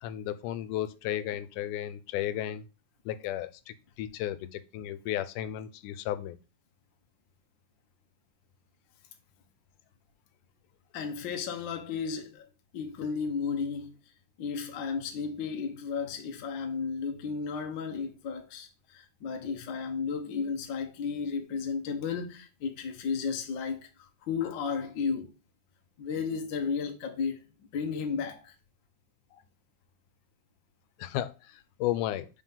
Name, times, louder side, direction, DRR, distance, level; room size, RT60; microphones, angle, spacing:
voice 1, 0.0-2.6 3.1-6.4 31.0-31.3 31.8-32.3, left 12 dB, 85° left, 2.1 m, -33 dB
voice 2, 10.9-13.9 14.4-25.3 26.0-27.4 27.7-28.5, left 5 dB, 70° left, 1.1 m, -33 dB
4.8 x 3.7 x 5.5 m
omnidirectional pair, 3.5 m